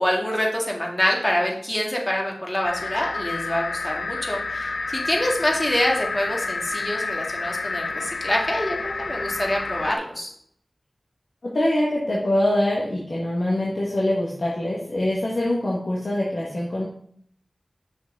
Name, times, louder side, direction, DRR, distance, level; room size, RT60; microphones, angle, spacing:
voice 1, 0.0-10.3, left 1 dB, 20° left, -1 dB, 1.8 m, -25 dB
sound 1, 2.6-10.0, left 3 dB, 90° left, 0.5 m, -30 dB
voice 2, 11.4-16.8, left 1 dB, 65° left, -5 dB, 1.4 m, -24 dB
6.3 x 6.0 x 3.6 m, 0.65 s
wide cardioid pair, 70°, 0 cm